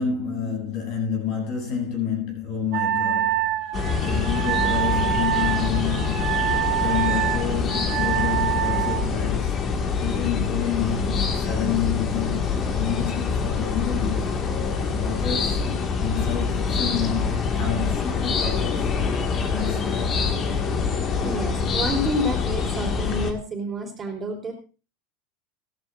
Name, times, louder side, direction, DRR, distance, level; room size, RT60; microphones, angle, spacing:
voice 1, 0.0-6.4 6.8-9.6 10.0-15.7 16.0-18.9 19.5-20.2, left 7 dB, 55° left, 7.9 m, -29 dB
Wind instrument woodwind instrument, 2.7-9.1, right 13 dB, 50° right, 1.2 m, -26 dB
sound 1, 3.7-23.3, left 5 dB, 35° left, 1.8 m, -25 dB
voice 2, 21.2-24.5, equal, 20° right, 3.6 m, -29 dB
16.5 x 14.0 x 2.5 m
supercardioid pair, 130°, 0 cm